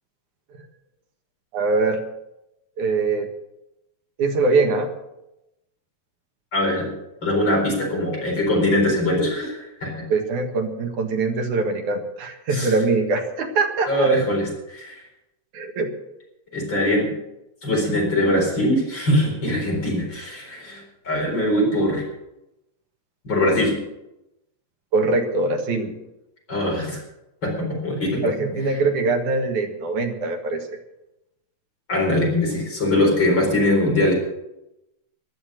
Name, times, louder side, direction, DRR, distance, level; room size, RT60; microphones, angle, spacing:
voice 1, 1.5-2.0 2.8-3.3 4.2-4.9 10.1-14.1 15.5-15.9 24.9-25.9 28.2-30.8, right 3 dB, 90° right, 5 dB, 3.1 m, -22 dB
voice 2, 6.5-6.9 7.2-10.0 12.5-12.7 13.9-15.0 16.5-17.1 17.6-22.0 23.2-23.7 26.5-27.0 27.4-28.3 31.9-34.1, left 1 dB, 40° left, -2 dB, 5.0 m, -22 dB
14.0 x 12.0 x 6.4 m, 0.90 s
omnidirectional pair, 3.3 m